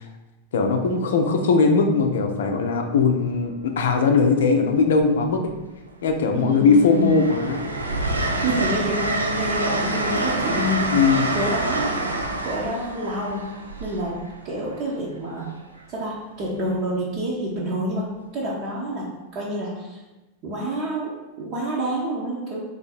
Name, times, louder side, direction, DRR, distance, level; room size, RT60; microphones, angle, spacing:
voice 1, 0.5-5.5 6.0-7.6 10.9-11.3, left 4 dB, 60° left, 4 dB, 0.5 m, -19 dB
Train, 3.3-3.6 4.9-5.7 6.1-14.8 16.4-16.7, right 2 dB, 80° right, 0.4 m, -27 dB
voice 2, 6.3-7.2 8.4-11.9 12.4-13.5 13.8-15.5 15.9-18.0 18.3-19.1 19.3-20.0 20.4-21.1 21.4-22.6, equal, 40° right, -5 dB, 0.8 m, -28 dB
3.8 x 2.6 x 4.2 m, 1.1 s
figure-of-eight pair, 90°, 0 cm